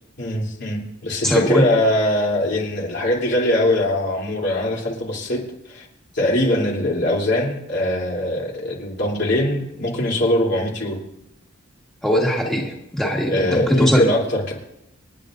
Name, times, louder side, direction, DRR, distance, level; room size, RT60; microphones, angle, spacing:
voice 1, 0.2-5.9 6.1-11.0 13.3-14.5, left 1 dB, 60° left, -2 dB, 3.2 m, -22 dB
voice 2, 1.2-1.7 12.0-14.1, equal, ahead, -2 dB, 1.6 m, -19 dB
27.5 x 9.9 x 2.6 m, 0.84 s
head